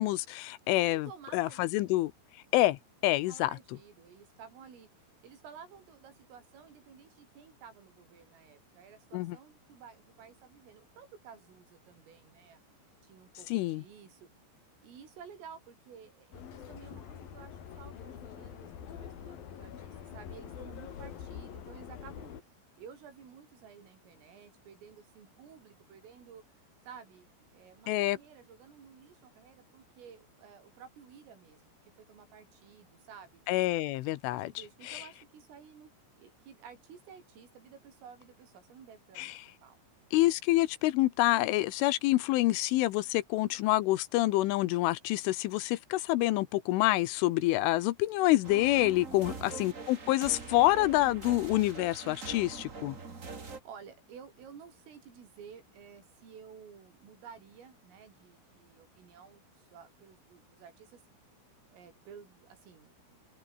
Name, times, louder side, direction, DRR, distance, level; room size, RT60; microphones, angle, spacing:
voice 1, 0.0-1.1 1.3-2.1 2.5-3.5 9.1-9.4 13.5-13.8 27.9-28.2 33.5-34.5 34.9-35.0 39.2-39.3 40.1-52.9, left 17 dB, 80° left, 3.3 m, -27 dB
voice 2, 0.9-2.1 3.1-4.9 5.2-12.6 13.0-14.3 14.8-22.3 22.8-26.4 26.8-27.3 27.5-33.8 34.3-35.9 36.2-39.3 39.6-40.1 49.1-49.5 52.7-61.0 61.7-63.2, right 7 dB, 80° right, 7.5 m, -53 dB
Subway metro underground, 16.3-22.4, left 8 dB, 50° left, 3.8 m, -45 dB
sound 1, 48.4-53.6, right 4 dB, 55° right, 0.8 m, -43 dB
omnidirectional pair, 5.9 m